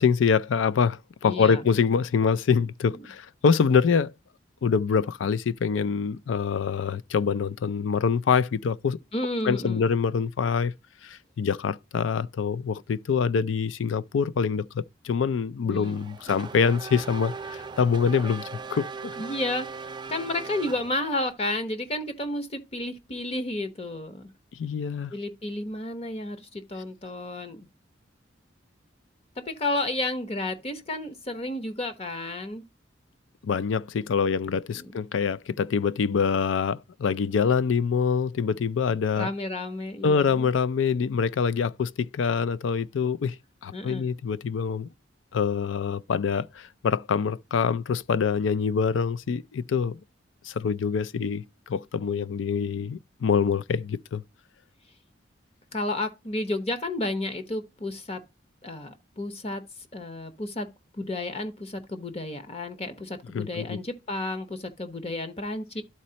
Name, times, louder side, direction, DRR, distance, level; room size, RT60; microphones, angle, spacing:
voice 1, 0.0-4.1 4.6-9.0 9.4-10.7 11.0-18.4 18.7-19.2 24.5-25.1 33.4-39.3 40.0-43.3 43.6-44.9 45.3-50.0 50.4-54.2 63.3-63.8, left 6 dB, 85° left, 0.4 m, -25 dB
voice 2, 1.2-1.6 2.6-3.1 9.1-9.9 15.7-16.0 19.2-24.3 25.1-27.7 29.4-32.7 34.5-34.9 39.2-40.5 43.7-44.1 55.7-58.2 58.6-59.6 59.9-60.7 60.9-65.8, left 2 dB, 35° left, 1.0 m, -32 dB
Race car auto racing / Accelerating revving vroom, 15.8-21.3, right 4 dB, 25° right, 0.3 m, -39 dB
12.5 x 4.2 x 2.8 m
head